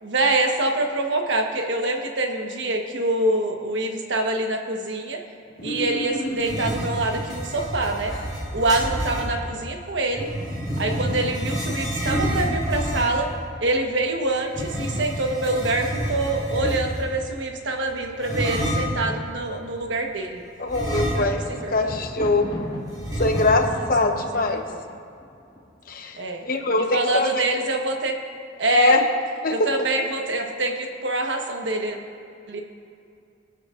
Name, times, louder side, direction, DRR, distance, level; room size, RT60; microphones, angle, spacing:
voice 1, 0.0-5.2 5.6-8.1 8.5-10.3 10.8-13.3 13.6-20.4 21.1-22.0 23.7-24.8 26.1-26.4 26.9-28.2 28.6-29.0 29.5-32.0 32.5-32.6, right 2 dB, 75° right, 3 dB, 1.2 m, -25 dB
sound 1, 5.6-6.9 7.5-8.4, equal, 75° left, 1.7 m, -32 dB
sound 2, 6.4-9.3 10.1-13.3 14.5-17.1 18.2-19.0 20.7-21.6 21.9-22.0 23.0-23.9, equal, 20° right, 2.9 m, -28 dB
voice 2, 20.6-21.4 21.7-22.6 23.2-24.6 25.9-26.2 26.4-27.4 28.7-29.0 29.4-29.6, left 3 dB, 50° left, 4 dB, 0.9 m, -22 dB
Thunder, 21.3-26.0 26.7-27.2 27.5-27.6, equal, 25° left, 1.7 m, -38 dB
23.5 x 8.8 x 2.5 m, 2.5 s
head